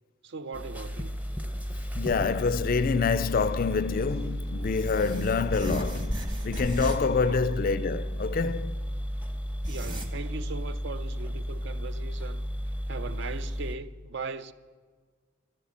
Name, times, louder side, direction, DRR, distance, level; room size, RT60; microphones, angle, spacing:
voice 1, 0.2-1.2 7.2-7.4 9.7-12.4 12.9-14.5, right 4 dB, 60° right, 0.5 m, -39 dB
sound 1, 0.5-13.8, equal, 10° right, 0.7 m, -33 dB
voice 2, 2.0-8.8, left 5 dB, 45° left, 0.3 m, -27 dB
sound 2, 2.9-9.1, right 1 dB, 85° right, 1.9 m, -55 dB
sound 3, 4.6-7.2 7.5-7.6 8.8-8.9 9.4-10.1, equal, 25° right, 1.2 m, -36 dB
12.0 x 11.5 x 7.2 m
head